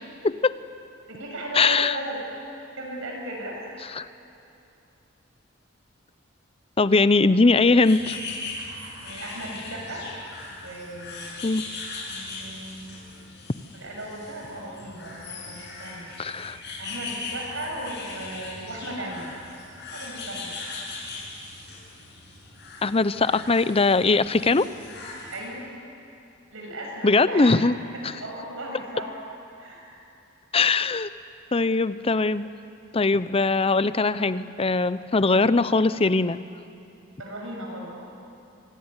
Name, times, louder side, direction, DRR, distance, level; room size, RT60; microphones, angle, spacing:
voice 1, 0.2-0.6 1.5-2.0 3.9-4.1 6.8-8.2 11.4-11.6 16.2-16.6 22.8-24.7 27.0-27.8 30.5-31.1 31.5-32.5 32.9-36.4, left 3 dB, 30° left, 15 dB, 0.6 m, -21 dB
voice 2, 1.1-3.8 9.0-10.1 10.5-11.5 12.0-12.9 13.7-16.1 16.8-19.3 19.9-20.6 25.3-25.7 26.5-27.6 28.2-29.1 29.6-29.9 35.2-35.4 37.2-38.1, right 1 dB, 70° right, -1 dB, 7.1 m, -36 dB
sound 1, 7.8-25.4, left 3 dB, 55° left, 7.1 m, -39 dB
26.0 x 18.5 x 9.9 m, 2.7 s
head